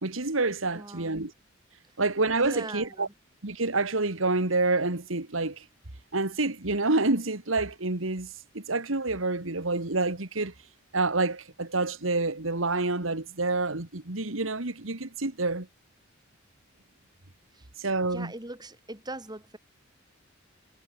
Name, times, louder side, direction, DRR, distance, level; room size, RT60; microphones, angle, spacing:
voice 1, 0.0-1.3 2.0-3.1 3.4-5.6 6.1-10.5 10.9-15.7 17.8-18.3, right 3 dB, 85° right, 2.2 m, -28 dB
voice 2, 0.7-1.2 2.4-3.1 17.5-17.7 18.1-19.6, right 2 dB, 20° right, 6.3 m, -41 dB
head